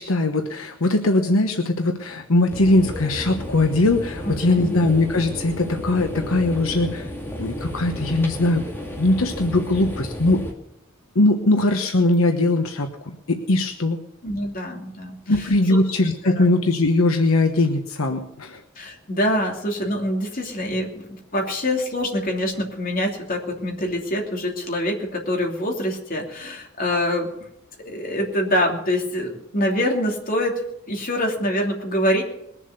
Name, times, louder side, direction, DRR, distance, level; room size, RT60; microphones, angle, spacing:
voice 1, 0.0-7.1 7.4-8.6 9.0-10.4 11.1-14.0 15.3-18.6, left 2 dB, 75° left, 5 dB, 1.2 m, -20 dB
sound 1, 2.5-10.5, equal, 10° left, 2.1 m, -32 dB
voice 2, 14.2-15.2 15.7-15.8 16.2-16.5 18.8-27.3 27.8-30.5 30.9-32.2, left 1 dB, 40° left, 1 dB, 2.9 m, -25 dB
21.0 x 7.3 x 6.8 m, 0.79 s
head